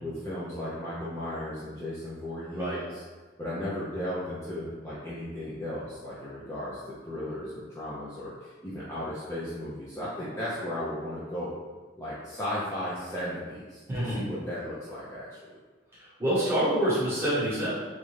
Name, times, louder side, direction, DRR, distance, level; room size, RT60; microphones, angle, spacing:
voice 1, 0.0-3.0 3.4-11.5 12.0-15.6, left 1 dB, 15° left, -9 dB, 0.5 m, -35 dB
voice 2, 13.9-14.3 16.2-17.7, right 1 dB, 10° right, -10 dB, 1.1 m, -26 dB
3.1 x 2.5 x 3.1 m, 1.3 s
head